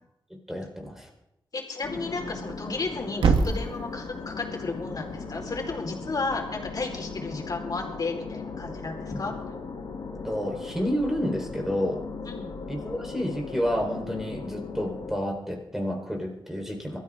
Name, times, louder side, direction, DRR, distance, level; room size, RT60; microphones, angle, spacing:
voice 1, 0.3-1.1 10.2-12.0 12.7-17.0, equal, 5° right, 1 dB, 4.2 m, -30 dB
voice 2, 1.5-9.3 12.2-12.5, left 3 dB, 50° left, 1 dB, 4.4 m, -33 dB
sound 1, 1.8-15.1, left 4 dB, 80° left, 3.0 m, -38 dB
Thump thud, 2.3-6.4, right 5 dB, 90° right, 1.5 m, -30 dB
23.0 x 14.0 x 3.7 m, 0.86 s
wide cardioid pair, 95°, 8 cm